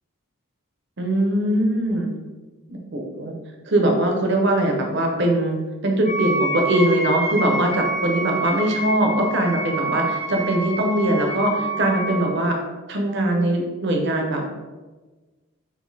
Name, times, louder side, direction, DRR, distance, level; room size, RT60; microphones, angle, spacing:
voice 1, 1.0-2.1 2.7-3.3 3.7-12.6 12.9-14.5, right 1 dB, 55° right, 2 dB, 0.7 m, -21 dB
Wind instrument woodwind instrument, 6.0-12.4, right 2 dB, 30° left, 1.0 m, -27 dB
3.9 x 2.6 x 4.0 m, 1.3 s
head